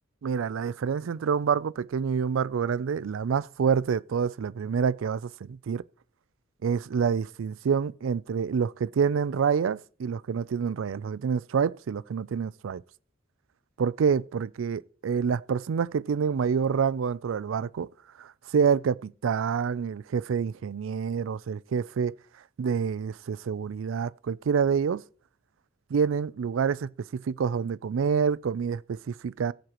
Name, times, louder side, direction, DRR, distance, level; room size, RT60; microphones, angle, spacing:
voice 1, 0.2-5.8 6.6-12.8 13.8-17.9 18.2-22.1 22.6-25.0 25.9-29.5, right 6 dB, 70° right, 0.4 m, -27 dB
18.5 x 8.0 x 3.0 m
head